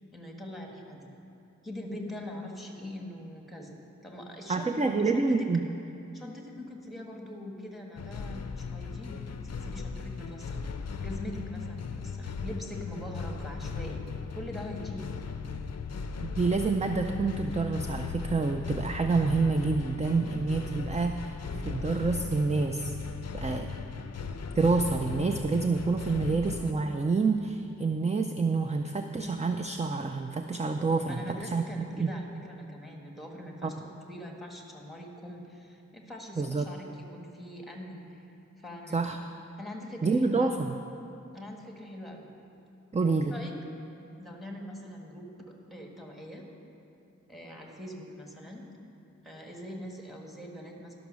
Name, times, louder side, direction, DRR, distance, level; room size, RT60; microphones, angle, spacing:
voice 1, 0.1-1.1 1.6-5.5 6.1-10.6 11.0-14.0 14.3-15.2 31.1-36.9 37.1-38.2 38.6-39.0 39.6-40.5 41.3-42.3 43.2-43.5 44.2-46.4 47.3-48.6 49.2-50.9, left 1 dB, ahead, 0 dB, 1.5 m, -42 dB
voice 2, 4.5-5.6 16.2-21.4 21.6-22.9 23.3-23.7 24.6-31.6 32.0-32.1 33.6-33.7 36.4-36.7 38.9-39.2 40.0-40.8 42.9-43.4, right 4 dB, 25° right, 5 dB, 0.4 m, -27 dB
sound 1, 8.0-26.7, left 5 dB, 55° left, 0.5 m, -37 dB
11.5 x 6.0 x 6.2 m, 2.8 s
wide cardioid pair, 55°, 31 cm